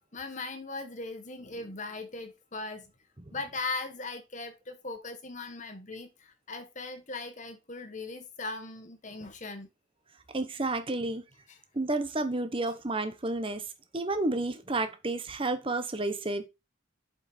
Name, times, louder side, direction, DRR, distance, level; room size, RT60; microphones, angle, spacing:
voice 1, 0.0-2.9 3.3-9.7 11.5-11.6, left 3 dB, 40° left, 1.4 m, -39 dB
voice 2, 10.3-11.2 11.7-13.7 13.9-16.5, right 2 dB, 25° right, 1.0 m, -31 dB
7.3 x 5.4 x 4.2 m
head